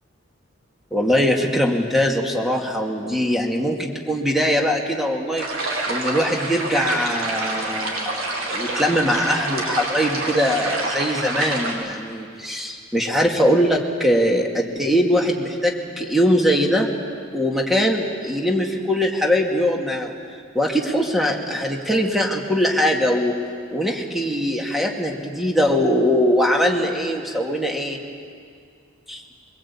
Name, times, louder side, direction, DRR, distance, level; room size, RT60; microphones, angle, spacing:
voice 1, 0.9-5.5 5.9-16.9 17.3-20.1 20.5-23.4 23.7-28.0 29.1-29.2, equal, ahead, 1 dB, 2.3 m, -21 dB
sound 1, 5.4-11.7, right 2 dB, 85° right, 4.5 m, -27 dB
23.5 x 22.5 x 8.7 m, 2.2 s
head